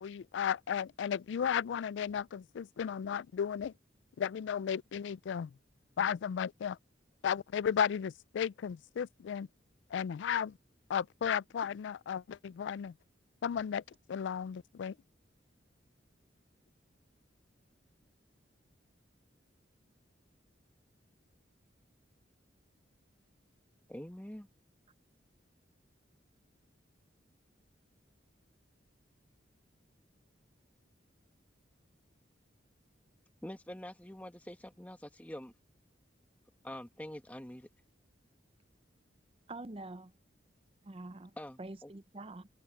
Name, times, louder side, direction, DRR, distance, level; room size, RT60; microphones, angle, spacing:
voice 1, 0.0-3.7 4.2-5.5 6.0-6.8 7.2-9.5 9.9-10.6 10.9-12.9 13.4-13.8 14.1-14.9, left 8 dB, 70° left, 0.3 m, -34 dB
voice 2, 23.9-24.5 33.4-35.5 36.6-37.7 41.4-41.9, left 1 dB, 10° left, 1.1 m, -45 dB
voice 3, 39.5-40.1 40.8-42.5, right 2 dB, 30° right, 0.6 m, -46 dB
head